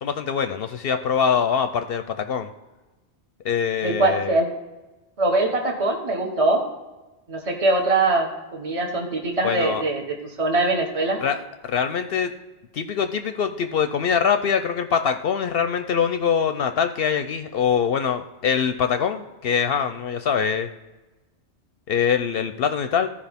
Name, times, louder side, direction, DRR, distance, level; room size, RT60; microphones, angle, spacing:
voice 1, 0.0-2.5 3.4-4.3 9.4-9.8 11.2-12.3 12.7-20.7 21.9-23.1, left 7 dB, 65° left, 9 dB, 0.7 m, -23 dB
voice 2, 3.8-4.5 5.2-6.6 7.3-11.2, right 2 dB, 30° right, 1 dB, 1.0 m, -22 dB
13.5 x 5.0 x 3.5 m, 1.1 s
omnidirectional pair, 1.1 m